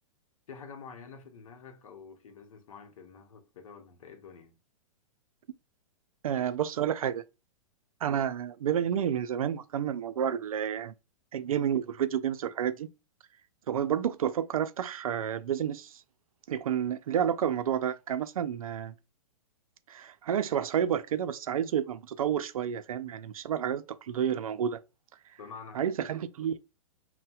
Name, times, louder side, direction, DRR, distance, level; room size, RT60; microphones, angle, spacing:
voice 1, 0.5-4.6 25.4-25.8, left 5 dB, 75° left, 0.8 m, -48 dB
voice 2, 6.2-7.2 8.0-10.9 11.3-12.9 13.7-16.0 16.5-18.9 19.9-24.8 25.7-26.6, right 9 dB, 85° right, 0.4 m, -30 dB
4.1 x 2.1 x 2.2 m
hypercardioid pair, 130°, 18 cm